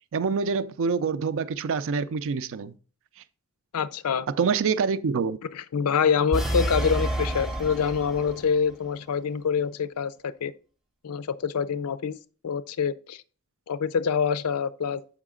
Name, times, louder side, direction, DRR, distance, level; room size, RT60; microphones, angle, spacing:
voice 1, 0.1-2.7 4.3-5.4, right 5 dB, 60° right, 0.4 m, -26 dB
voice 2, 3.7-4.3 5.5-10.5 11.0-12.2 12.4-13.2 13.7-15.0, left 6 dB, 75° left, 0.5 m, -26 dB
sound 1, 6.3-8.6, right 1 dB, ahead, 0.6 m, -28 dB
7.2 x 4.9 x 3.7 m
head